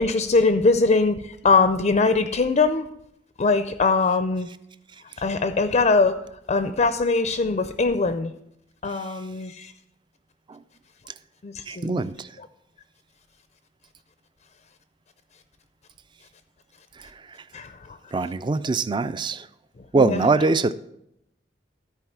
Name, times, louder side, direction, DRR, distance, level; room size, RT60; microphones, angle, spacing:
voice 1, 0.0-2.8 3.4-4.5 5.2-6.2 6.5-8.3 8.8-9.7 11.4-12.1 12.4-12.5 17.5-18.2 19.9-20.3, left 3 dB, 40° left, 9 dB, 0.4 m, -22 dB
voice 2, 11.7-12.1 18.1-19.4 19.9-20.7, right 3 dB, 25° right, 15 dB, 0.4 m, -22 dB
13.0 x 4.7 x 5.8 m, 0.79 s
head